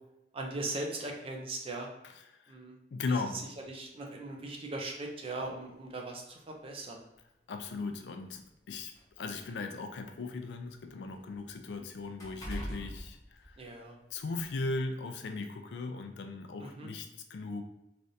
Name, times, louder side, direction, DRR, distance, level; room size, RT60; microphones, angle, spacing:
voice 1, 0.3-1.9 2.5-2.8 3.3-3.4 3.7-7.0 12.5-12.8 13.6-14.0 16.6-16.9, right 2 dB, 35° right, 1 dB, 0.5 m, -39 dB
voice 2, 2.9-3.4 7.5-13.6 14.1-17.6, left 3 dB, 75° left, 6 dB, 0.4 m, -38 dB
sound 1, 5.4-5.6 6.6-6.7 7.2-7.3 8.2-10.2 10.6-14.0 14.4-14.6, equal, 20° left, 0.9 m, -45 dB
3.2 x 2.5 x 2.7 m, 0.89 s
head